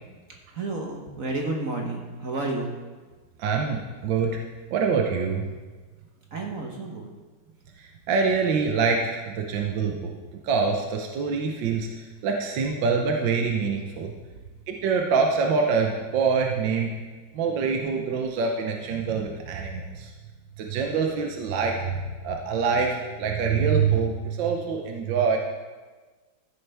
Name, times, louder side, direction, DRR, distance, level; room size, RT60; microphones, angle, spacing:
voice 1, 0.5-2.8 6.3-7.1, right 2 dB, 50° right, 0 dB, 1.3 m, -31 dB
voice 2, 3.4-4.4 4.7-5.5 7.8-10.1 10.4-14.1 14.7-17.0 17.3-20.1 20.6-25.4, right 5 dB, 65° right, 2 dB, 1.5 m, -25 dB
14.5 x 7.8 x 3.4 m, 1.3 s
omnidirectional pair, 2.3 m